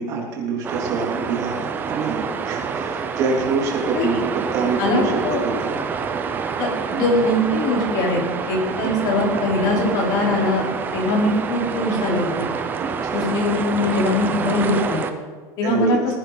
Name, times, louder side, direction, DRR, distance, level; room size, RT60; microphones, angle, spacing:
voice 1, 0.0-5.8 6.9-7.0 8.8-8.9 12.8-13.2 15.6-16.0, right 4 dB, 40° right, -1 dB, 3.5 m, -26 dB
sound 1, 0.6-15.1, right 6 dB, 20° right, 0.9 m, -27 dB
voice 2, 4.8-5.4 6.6-6.7 6.9-10.6 10.9-12.5 13.1-15.0 15.6-16.0, left 2 dB, 40° left, -2 dB, 4.5 m, -21 dB
19.5 x 10.0 x 4.2 m, 1.4 s
supercardioid pair, 160°, 9 cm